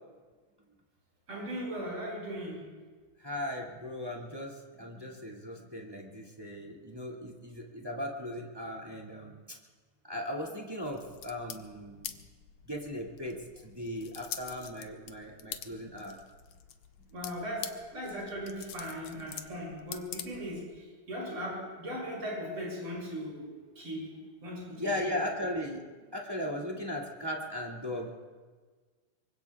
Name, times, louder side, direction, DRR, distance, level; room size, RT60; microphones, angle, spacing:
voice 1, 1.3-2.6 17.1-23.5 23.8-24.0 24.4-25.2, equal, 45° right, -4 dB, 7.4 m, -38 dB
voice 2, 3.2-9.6 10.0-12.1 12.7-13.4 13.6-16.2 24.7-25.8 26.1-28.1, left 1 dB, 10° right, -2 dB, 1.5 m, -37 dB
sound 1, 10.8-20.8, left 10 dB, 85° left, 1.3 m, -46 dB
25.5 x 24.0 x 2.4 m, 1.4 s
omnidirectional pair, 3.7 m